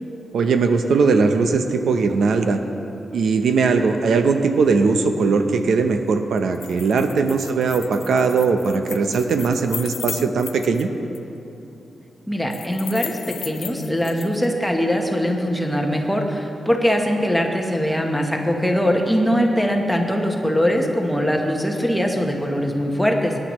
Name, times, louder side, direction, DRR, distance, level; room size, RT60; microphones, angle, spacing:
voice 1, 0.3-2.6 3.1-10.9, right 4 dB, 75° right, 7 dB, 0.7 m, -19 dB
sound 1, 6.4-10.8 11.1-11.2 12.5-14.5, left 8 dB, 75° left, 0.4 m, -35 dB
voice 2, 12.3-23.4, equal, ahead, 1 dB, 1.0 m, -21 dB
20.5 x 9.9 x 3.1 m, 2.9 s
wide cardioid pair, 175°, 0 cm